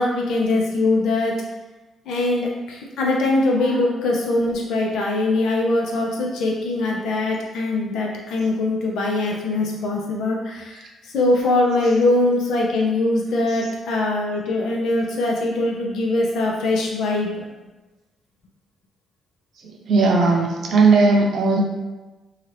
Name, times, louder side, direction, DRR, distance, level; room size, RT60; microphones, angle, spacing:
voice 1, 0.0-1.3 2.1-10.8 11.1-17.4, left 2 dB, 80° left, -1 dB, 0.6 m, -22 dB
voice 2, 19.6-21.6, right 3 dB, 65° right, 0 dB, 0.6 m, -17 dB
2.8 x 2.4 x 3.2 m, 1.1 s
cardioid pair, 90°, 0 cm